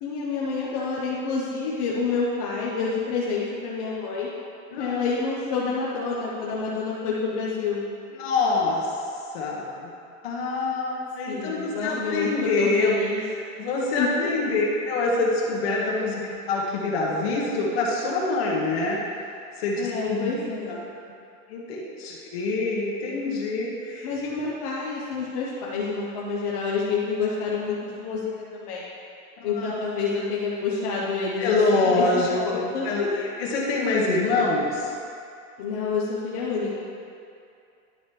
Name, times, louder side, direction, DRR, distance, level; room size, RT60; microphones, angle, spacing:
voice 1, 0.0-4.3 4.8-7.8 11.3-13.2 14.0-14.4 19.8-20.8 24.0-28.2 28.5-28.8 29.4-33.2 35.6-36.7, left 4 dB, 25° left, -6 dB, 0.5 m, -28 dB
voice 2, 4.7-5.1 8.2-8.9 9.3-9.9 10.2-12.9 13.6-19.0 19.6-20.3 21.5-24.1 29.4-29.7 31.4-34.9, left 3 dB, 45° left, -3 dB, 1.4 m, -25 dB
10.5 x 5.1 x 3.1 m, 2.5 s
supercardioid pair, 175°, 43 cm